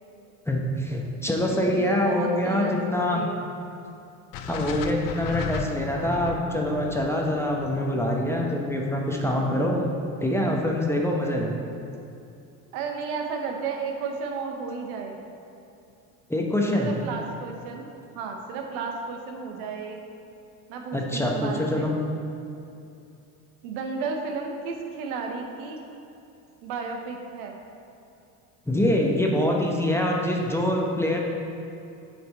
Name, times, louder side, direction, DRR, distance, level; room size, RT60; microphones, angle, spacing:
voice 1, 0.5-3.3 4.5-9.8 10.2-11.5 16.3-16.9 20.9-21.9 28.7-31.2, left 1 dB, 5° left, -1 dB, 0.9 m, -25 dB
voice 2, 1.5-3.4 12.7-15.2 16.8-17.9 18.1-20.0 20.7-21.9 23.6-25.8 26.6-27.5, right 5 dB, 70° right, 2 dB, 1.0 m, -33 dB
sound 1, 4.3-8.5, left 4 dB, 45° left, 0.6 m, -35 dB
8.4 x 4.4 x 4.1 m, 2.7 s
hypercardioid pair, 80°, 46 cm